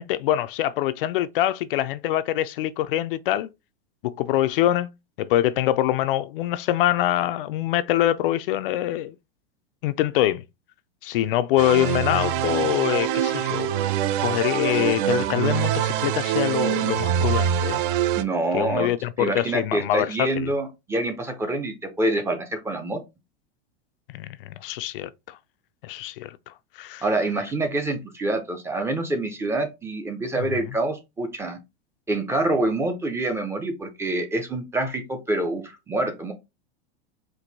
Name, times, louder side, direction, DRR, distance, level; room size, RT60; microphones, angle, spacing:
voice 1, 0.0-3.5 4.0-4.9 5.2-9.1 9.8-10.4 11.0-13.7 14.2-17.8 18.5-20.5 24.1-25.4 25.8-26.4 26.8-27.0, left 13 dB, 60° left, 0.5 m, -24 dB
sound 1, 11.6-18.2, right 10 dB, 55° right, 0.5 m, -24 dB
voice 2, 18.2-18.9 19.2-23.0 27.0-31.6 32.1-36.3, right 2 dB, 10° right, 0.5 m, -26 dB
4.6 x 2.6 x 3.9 m
supercardioid pair, 150°, 32 cm